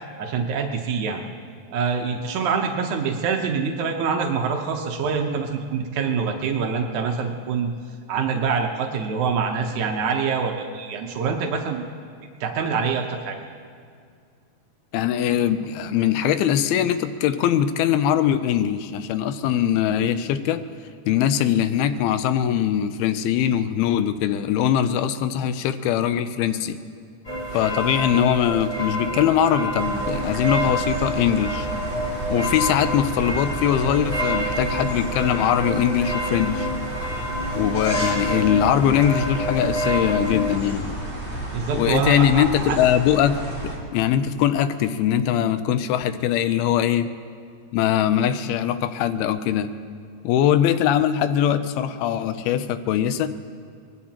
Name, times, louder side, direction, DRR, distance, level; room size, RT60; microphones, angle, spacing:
voice 1, 0.2-1.2 1.7-7.7 8.1-11.8 12.4-13.3 41.5-42.8, right 5 dB, 85° right, 2 dB, 1.7 m, -25 dB
voice 2, 14.9-20.6 21.1-26.8 27.5-31.7 32.3-36.7 37.6-41.0 41.7-47.1 47.7-49.7 50.2-53.3, left 10 dB, 80° left, 11 dB, 2.3 m, -21 dB
sound 1, 27.2-40.5, right 1 dB, 20° left, 2.1 m, -28 dB
sound 2, 29.8-43.8, right 1 dB, 5° left, 3.0 m, -32 dB
24.5 x 20.0 x 2.9 m, 2.2 s
omnidirectional pair, 4.8 m